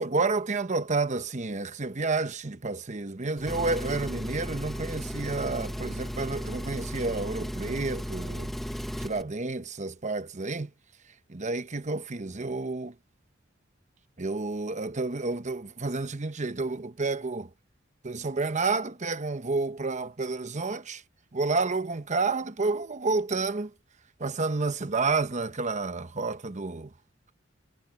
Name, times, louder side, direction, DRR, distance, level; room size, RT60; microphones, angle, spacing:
voice 1, 0.0-8.5 9.0-10.7 11.3-12.9 14.2-17.5 18.0-21.0 21.3-23.7 24.2-26.9, right 3 dB, 40° right, 1.0 m, -30 dB
Engine, 3.4-9.2, equal, ahead, 1.1 m, -35 dB
head